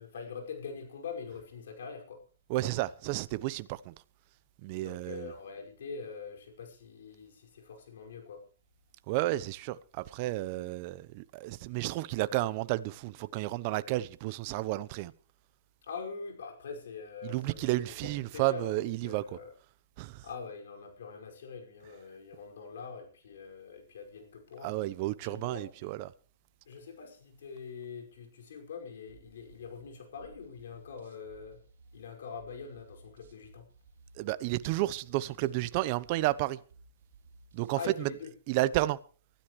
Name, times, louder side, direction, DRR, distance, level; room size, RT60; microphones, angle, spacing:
voice 1, 0.0-2.2 4.8-8.4 15.8-19.5 20.2-24.8 25.2-25.7 26.7-31.6 31.9-33.7 37.7-38.3, left 5 dB, 75° left, 5.5 m, -44 dB
voice 2, 2.5-3.9 4.6-5.3 9.1-15.1 17.2-19.4 20.0-20.2 24.6-26.1 34.2-36.6 37.5-38.1 38.5-39.0, right 17 dB, 40° right, 0.8 m, -32 dB
sound 1, 29.1-37.8, right 3 dB, 75° right, 3.3 m, -58 dB
24.5 x 13.0 x 3.2 m
hypercardioid pair, 140°, 0 cm